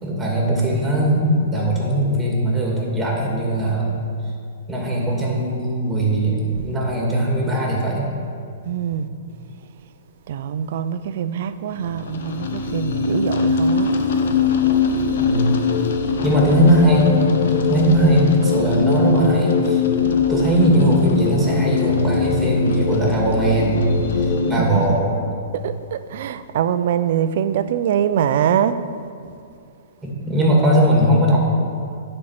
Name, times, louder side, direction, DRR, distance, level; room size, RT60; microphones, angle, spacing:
voice 1, 0.0-3.9 4.7-8.1 15.2-15.5 16.2-17.1 17.5-19.8 20.3-25.3 30.0-31.4, right 1 dB, 10° right, 2.2 m, -19 dB
voice 2, 8.6-9.1 9.6-9.7 10.3-14.0 24.6-25.0 25.5-28.8 29.2-29.4, right 9 dB, 60° right, 0.5 m, -23 dB
sound 1, 11.8-24.6, left 5 dB, 70° left, 0.9 m, -21 dB
9.5 x 4.4 x 6.6 m
hypercardioid pair, 130°, 0 cm